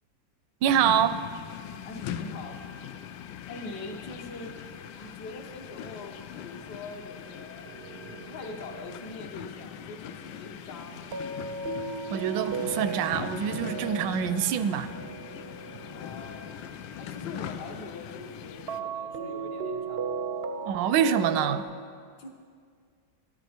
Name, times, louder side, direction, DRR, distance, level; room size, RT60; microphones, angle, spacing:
voice 1, 0.6-1.2 12.1-14.9 20.7-21.7, right 8 dB, 80° right, 12 dB, 1.2 m, -25 dB
sound 1, 0.7-18.8, left 9 dB, 90° left, 1.3 m, -41 dB
voice 2, 1.9-2.6 3.5-4.5 5.0-7.7 8.1-11.1 15.9-16.6 17.0-20.3 22.2-22.3, left 3 dB, 65° left, 1 dB, 1.8 m, -43 dB
sound 2, 7.7-9.1 11.1-16.7 18.7-21.6, right 4 dB, 65° right, 0.6 m, -36 dB
13.5 x 12.5 x 4.4 m, 2.1 s
omnidirectional pair, 2.0 m